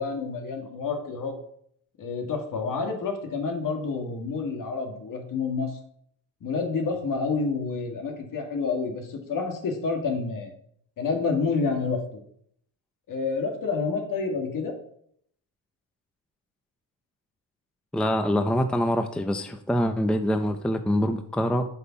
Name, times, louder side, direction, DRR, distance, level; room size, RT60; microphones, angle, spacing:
voice 1, 0.0-1.3 2.0-5.8 6.4-10.5 11.0-12.2 13.1-14.7, left 4 dB, 55° left, 3 dB, 2.1 m, -28 dB
voice 2, 17.9-21.6, equal, ahead, 8 dB, 0.5 m, -25 dB
7.9 x 5.6 x 5.8 m, 0.68 s
cardioid pair, 105°, 38 cm